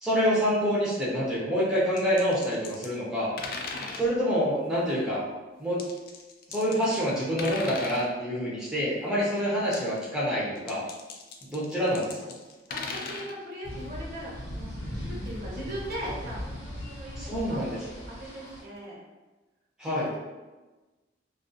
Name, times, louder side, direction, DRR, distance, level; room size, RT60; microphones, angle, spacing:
voice 1, 0.0-3.3 3.9-5.2 5.6-5.8 6.5-10.8 11.5-12.3 17.2-17.8 19.8-20.2, equal, 5° right, -8 dB, 0.6 m, -27 dB
sound 1, 2.0-2.9 3.4-4.1 5.8-7.1 7.4-8.1 9.5-10.0 10.6-13.3, left 4 dB, 55° left, 0.3 m, -38 dB
voice 2, 12.7-19.0 19.8-20.2, equal, 55° right, -5 dB, 0.7 m, -40 dB
sound 2, 13.6-18.6, equal, 75° left, 0.7 m, -38 dB
2.4 x 2.3 x 2.6 m, 1.2 s
head